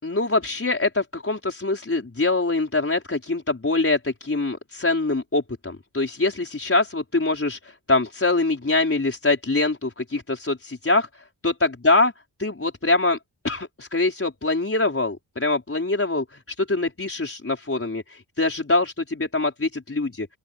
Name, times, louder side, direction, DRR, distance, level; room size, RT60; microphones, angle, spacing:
voice 1, 0.0-12.1 12.4-13.2 13.4-20.3, left 2 dB, 30° left, 5.0 m, -24 dB
open air
wide cardioid pair, 90°, 44 cm